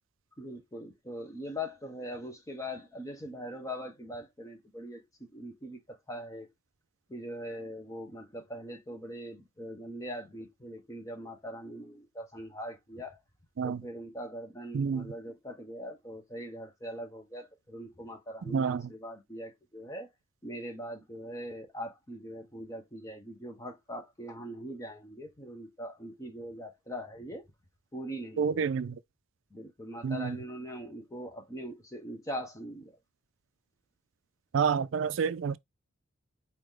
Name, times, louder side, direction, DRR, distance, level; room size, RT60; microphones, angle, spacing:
voice 1, 0.4-6.5 7.1-13.2 13.6-20.1 20.4-27.5 27.9-28.6 29.5-33.0, equal, 15° left, 1.0 m, -41 dB
voice 2, 14.7-15.1 18.5-18.8 28.4-28.9 30.0-30.4 34.5-35.6, right 6 dB, 65° right, 0.4 m, -28 dB
4.9 x 2.9 x 3.7 m
head